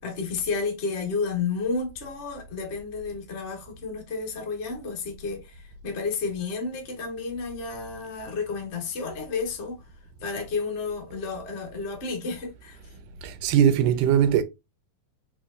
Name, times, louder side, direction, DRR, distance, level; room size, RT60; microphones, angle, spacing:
voice 1, 0.0-9.8 10.2-12.8, left 4 dB, 45° left, 0.9 m, -31 dB
voice 2, 13.4-14.4, right 9 dB, 85° right, 2.2 m, -19 dB
4.6 x 4.4 x 2.6 m
omnidirectional pair, 3.5 m